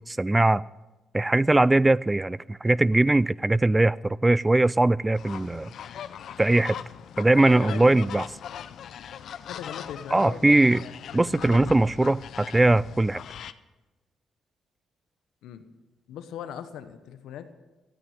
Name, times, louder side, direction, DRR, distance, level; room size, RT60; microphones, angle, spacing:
voice 1, 0.1-0.6 1.1-5.7 6.4-6.8 7.2-8.2 10.1-10.8 11.1-13.2, right 2 dB, 15° right, 21 dB, 0.3 m, -21 dB
sound 1, 5.2-13.5, left 9 dB, 65° left, 0.6 m, -41 dB
voice 2, 7.3-8.3 9.5-11.7 15.4-15.7 16.1-17.5, left 9 dB, 85° left, 10 dB, 1.1 m, -40 dB
14.0 x 9.2 x 7.4 m, 1.1 s
cardioid pair, 90°, 0 cm